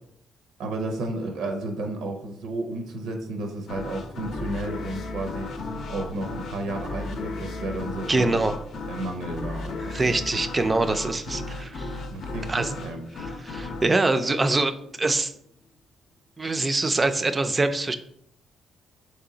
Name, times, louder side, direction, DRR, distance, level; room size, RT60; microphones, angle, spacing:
voice 1, 0.6-8.4 8.8-10.2 12.1-13.1, right 2 dB, 90° right, 4 dB, 0.6 m, -32 dB
sound 1, 3.7-15.1, left 3 dB, 65° left, 0.6 m, -35 dB
voice 2, 8.1-8.5 9.9-11.9 12.5-12.7 13.2-15.3 16.4-18.0, right 2 dB, 25° right, 9 dB, 0.3 m, -24 dB
3.1 x 2.9 x 3.8 m, 0.70 s
cardioid pair, 90°, 0 cm